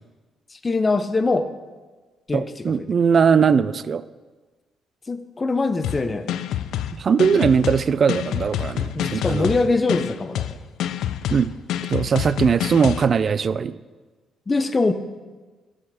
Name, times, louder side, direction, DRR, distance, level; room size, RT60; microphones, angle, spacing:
voice 1, 0.5-1.5 2.3-2.9 5.1-6.3 9.0-10.6 14.5-14.9, left 3 dB, 30° left, 10 dB, 0.7 m, -23 dB
voice 2, 2.3-4.0 6.9-9.5 11.3-11.5 11.9-13.8, right 6 dB, 50° right, 16 dB, 0.3 m, -20 dB
sound 1, 5.8-13.0, left 11 dB, 80° left, 0.3 m, -27 dB
12.5 x 5.0 x 4.2 m, 1.3 s
supercardioid pair, 60°, 0 cm